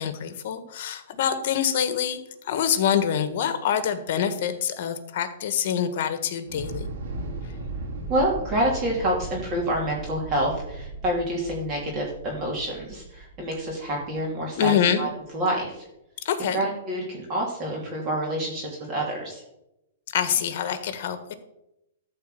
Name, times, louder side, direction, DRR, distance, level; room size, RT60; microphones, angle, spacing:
voice 1, 0.0-6.9 14.6-15.0 16.2-16.6 20.1-21.3, left 8 dB, 50° left, 10 dB, 1.6 m, -25 dB
Thunder / Explosion, 6.4-14.7, right 2 dB, 60° right, 2.8 m, -37 dB
voice 2, 8.1-15.9 16.4-19.4, right 1 dB, 25° right, -3 dB, 2.9 m, -27 dB
13.5 x 4.5 x 7.8 m, 0.87 s
hypercardioid pair, 155°, 0 cm